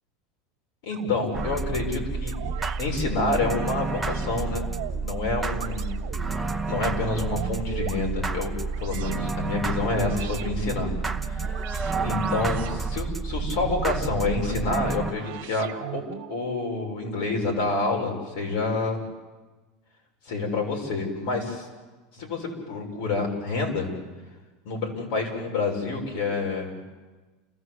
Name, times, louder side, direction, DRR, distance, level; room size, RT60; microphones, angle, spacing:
voice 1, 0.8-2.3 2.8-4.7 5.0-6.0 6.7-8.5 8.8-10.9 11.3-11.5 12.0-16.0 16.3-19.0 20.3-21.7 22.1-23.9 24.6-26.8, left 3 dB, 65° left, 1 dB, 6.8 m, -28 dB
sound 1, 0.9-1.6 2.3-2.8 3.3-5.1 5.5-6.4 6.9-8.0 8.7-9.3 9.9-10.5 11.0-12.8 13.3-14.6 15.1-16.4, right 13 dB, 60° right, 1.2 m, -39 dB
sound 2, 1.3-15.1, right 4 dB, 5° right, 0.9 m, -30 dB
29.5 x 16.0 x 8.3 m, 1.3 s
supercardioid pair, 155°, 0 cm